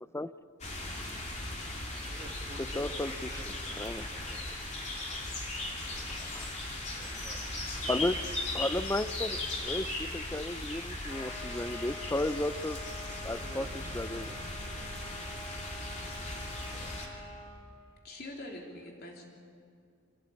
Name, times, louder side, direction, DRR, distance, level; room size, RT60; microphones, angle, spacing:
sound 1, 0.6-17.1, left 2 dB, 35° left, 2.9 m, -38 dB
voice 1, 2.0-3.7 4.1-4.4 7.0-8.6 13.2-14.4 14.7-15.3 16.6-17.0, right 2 dB, 25° right, 2 dB, 2.0 m, -52 dB
voice 2, 2.8-3.4 3.8-4.1 6.1-6.5 7.9-8.2 8.5-12.8 13.2-13.7 13.9-14.3, left 1 dB, 10° left, 14 dB, 0.5 m, -34 dB
sound 2, 11.0-17.6, left 2 dB, 65° left, 4.0 m, -46 dB
voice 3, 18.0-19.3, left 1 dB, 50° left, 0 dB, 3.5 m, -44 dB
24.5 x 16.0 x 8.6 m, 2.3 s
head